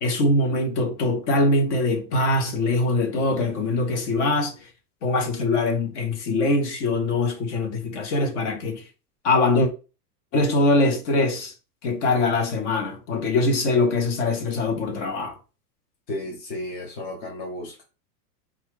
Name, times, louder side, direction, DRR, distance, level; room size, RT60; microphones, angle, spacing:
voice 1, 0.0-4.5 5.0-8.8 9.2-9.7 10.3-11.5 11.8-15.3, left 2 dB, 45° left, 0.9 m, -22 dB
voice 2, 16.1-17.8, left 1 dB, 25° left, 0.5 m, -33 dB
4.2 x 2.4 x 3.2 m
supercardioid pair, 170°, 49 cm